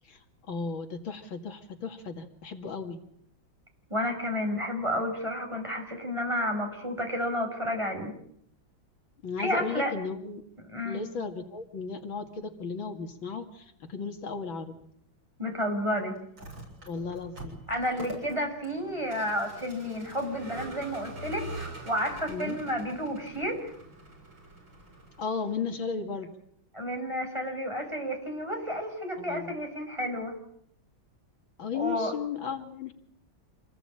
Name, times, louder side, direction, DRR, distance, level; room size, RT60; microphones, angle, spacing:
voice 1, 0.5-3.0 9.2-10.4 10.8-14.8 16.9-17.6 22.3-22.6 25.2-26.3 29.2-29.5 31.6-32.9, left 5 dB, 80° left, 5 dB, 2.9 m, -35 dB
voice 2, 3.9-8.1 9.4-9.9 10.7-11.0 15.4-16.2 17.7-23.7 26.7-30.4 31.7-32.1, equal, 15° right, 3 dB, 6.3 m, -31 dB
Vehicle, 16.2-25.6, right 2 dB, 75° right, 8.0 m, -44 dB
27.0 x 20.0 x 8.9 m, 0.70 s
omnidirectional pair, 2.2 m